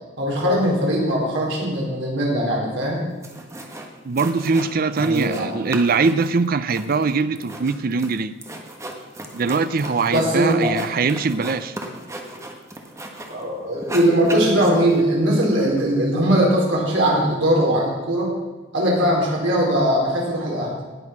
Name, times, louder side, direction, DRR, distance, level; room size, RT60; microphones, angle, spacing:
voice 1, 0.2-3.0 4.9-5.5 10.1-10.8 13.3-18.4 18.7-20.7, equal, 75° right, -3 dB, 4.1 m, -20 dB
sound 1, 2.9-3.0 3.2-3.9 4.2-5.5 5.7-13.4 13.7-15.0, right 1 dB, 15° right, 1.3 m, -34 dB
voice 2, 4.0-8.3 9.3-11.7, right 4 dB, 50° right, 13 dB, 0.5 m, -22 dB
18.0 x 6.3 x 6.0 m, 1.3 s
head